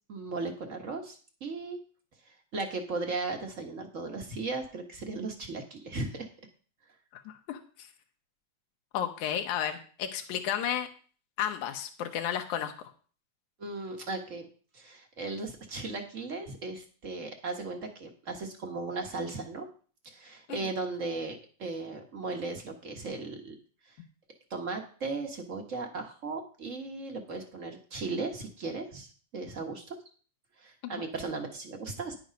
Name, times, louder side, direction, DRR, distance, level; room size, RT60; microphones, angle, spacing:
voice 1, 0.1-1.8 2.5-6.3 13.6-14.5 14.7-19.7 20.0-23.5 24.5-30.0 30.6-32.1, right 3 dB, 40° right, 3 dB, 1.1 m, -36 dB
voice 2, 7.1-7.9 8.9-10.9 11.4-12.7 20.5-20.6 30.8-31.1, left 9 dB, 85° left, 5 dB, 2.4 m, -33 dB
10.5 x 7.0 x 5.2 m, 0.40 s
omnidirectional pair, 3.3 m